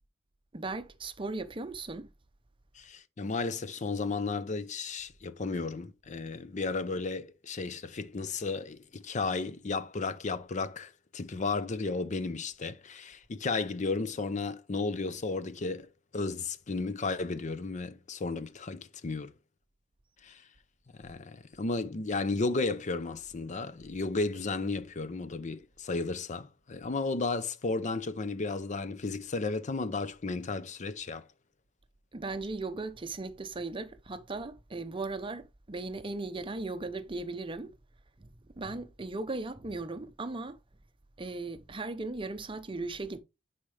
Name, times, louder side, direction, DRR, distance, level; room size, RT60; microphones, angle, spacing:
voice 1, 0.5-2.1 32.1-37.7 38.2-40.6 41.2-43.2, right 3 dB, 25° right, 0.6 m, -37 dB
voice 2, 2.8-19.3 20.2-20.4 21.0-31.3, left 3 dB, 40° left, 0.6 m, -34 dB
9.8 x 4.3 x 3.2 m
head